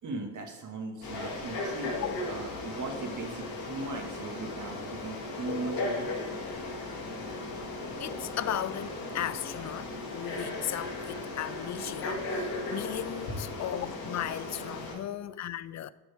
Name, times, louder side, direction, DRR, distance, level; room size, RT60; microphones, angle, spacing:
voice 1, 0.0-6.1, right 3 dB, 55° right, 1.9 m, -38 dB
Frog, 1.0-14.9, left 2 dB, 85° left, 2.3 m, -36 dB
voice 2, 8.0-15.9, left 11 dB, 50° left, 0.4 m, -36 dB
11.5 x 6.1 x 3.5 m
cardioid pair, 90°, 36 cm